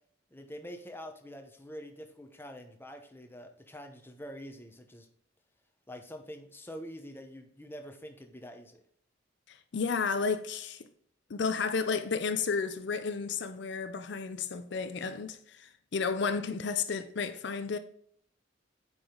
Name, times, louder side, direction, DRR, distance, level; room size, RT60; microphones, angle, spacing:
voice 1, 0.3-5.1 5.9-8.8, equal, 10° left, 0.9 m, -46 dB
voice 2, 9.5-10.9 11.3-17.8, left 5 dB, 60° left, 0.5 m, -32 dB
8.9 x 4.9 x 3.8 m
head